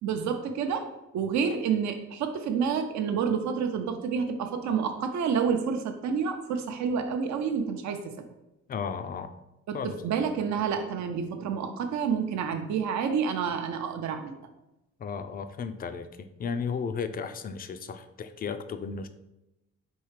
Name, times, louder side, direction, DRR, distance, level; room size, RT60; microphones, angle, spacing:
voice 1, 0.0-0.9 1.1-8.1 9.7-14.4, right 6 dB, 65° right, 6 dB, 0.6 m, -29 dB
voice 2, 8.7-9.3 9.7-9.9 15.0-16.1 16.4-19.1, left 6 dB, 30° left, 10 dB, 0.4 m, -34 dB
4.5 x 3.1 x 3.2 m, 0.93 s
cardioid pair, 90°, 30 cm